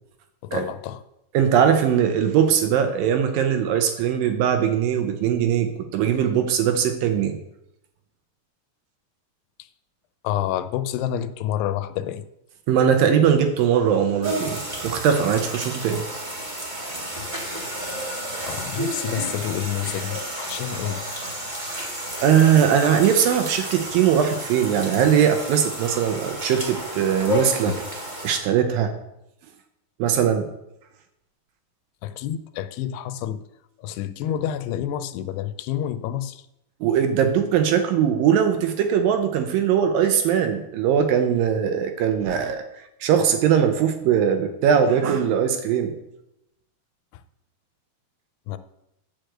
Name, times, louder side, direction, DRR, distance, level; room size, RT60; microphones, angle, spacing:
voice 1, 0.4-1.0 10.2-12.2 18.4-21.0 32.0-33.4 33.8-36.4 48.5-48.6, left 11 dB, 85° left, 12 dB, 2.6 m, -28 dB
voice 2, 1.3-7.4 12.7-16.0 22.2-27.8 28.2-28.9 30.0-30.5 36.8-42.6 43.0-45.9, right 8 dB, 75° right, 6 dB, 2.3 m, -20 dB
sound 1, 14.2-28.4, equal, 55° right, 0.5 m, -31 dB
9.4 x 5.2 x 7.7 m, 0.86 s
omnidirectional pair, 4.6 m